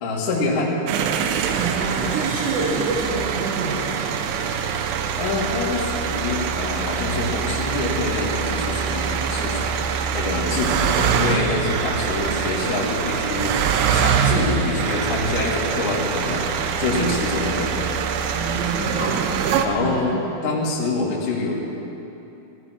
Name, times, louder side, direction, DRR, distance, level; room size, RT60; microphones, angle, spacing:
voice 1, 0.0-0.7 5.2-17.7 18.7-19.0 19.6-20.1 20.4-21.7, left 3 dB, 50° left, -5 dB, 3.0 m, -26 dB
sound 1, 0.9-19.7, right 7 dB, 80° right, 3.3 m, -24 dB
voice 2, 1.5-3.8 16.9-17.2 18.3-19.1 19.8-20.3, right 3 dB, 50° right, -7 dB, 2.6 m, -27 dB
17.0 x 12.5 x 6.1 m, 2.9 s
omnidirectional pair, 5.6 m